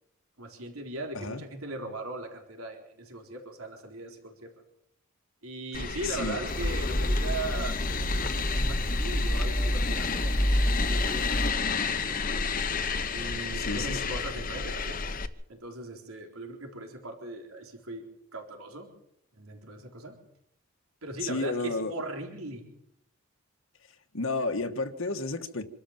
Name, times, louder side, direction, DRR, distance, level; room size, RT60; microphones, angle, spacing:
voice 1, 0.4-4.5 5.4-12.5 13.1-15.0 15.5-18.0 18.3-18.9 19.3-20.2 21.0-22.7, right 2 dB, 80° right, 2 dB, 3.9 m, -39 dB
sound 1, 5.7-15.3, left 5 dB, 40° left, 1.1 m, -31 dB
voice 2, 6.0-6.4 13.5-14.1 21.2-21.9 24.1-25.6, left 3 dB, 70° left, 4 dB, 1.5 m, -32 dB
sound 2, 6.5-11.5, equal, 20° left, 1.8 m, -28 dB
26.5 x 13.5 x 7.4 m, 0.75 s
head